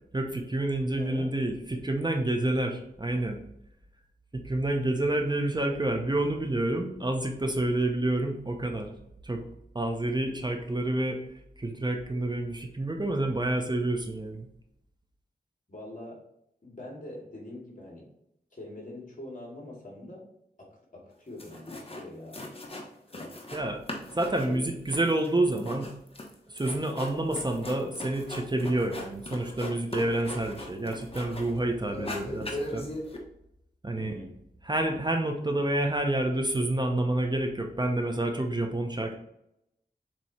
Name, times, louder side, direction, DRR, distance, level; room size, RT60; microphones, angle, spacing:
voice 1, 0.1-3.4 4.3-8.9 9.2-9.4 9.7-11.2 11.6-14.5 23.5-23.8 24.2-25.9 26.5-32.9 33.8-34.2 34.6-39.1, right 1 dB, 25° right, 3 dB, 0.8 m, -28 dB
voice 2, 1.0-1.3 15.7-16.2 16.6-18.0 18.5-20.2 20.6-22.4 23.1-23.3 24.4-24.7 34.0-34.3, left 1 dB, 50° left, -2 dB, 2.5 m, -43 dB
sound 1, 21.1-21.2 21.4-22.0 22.3-23.6 23.9-31.6 31.9-33.2, left 1 dB, 35° left, 1.2 m, -39 dB
7.5 x 3.1 x 4.2 m, 0.77 s
wide cardioid pair, 80°, 17 cm